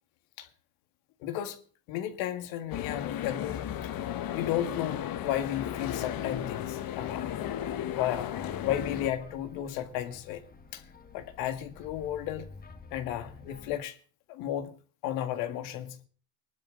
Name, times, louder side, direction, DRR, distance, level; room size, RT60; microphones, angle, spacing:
voice 1, 1.2-1.6 1.9-3.9 4.3-7.3 7.8-10.4 10.7-10.8 11.1-12.5 12.9-14.0 14.3-14.7 15.0-16.1, left 11 dB, 85° left, 1.9 m, -34 dB
sound 1, 2.7-9.1, left 11 dB, 45° left, 1.2 m, -35 dB
sound 2, 6.3-13.8, left 4 dB, 20° left, 1.4 m, -50 dB
21.0 x 12.0 x 3.8 m
cardioid pair, 115°, 48 cm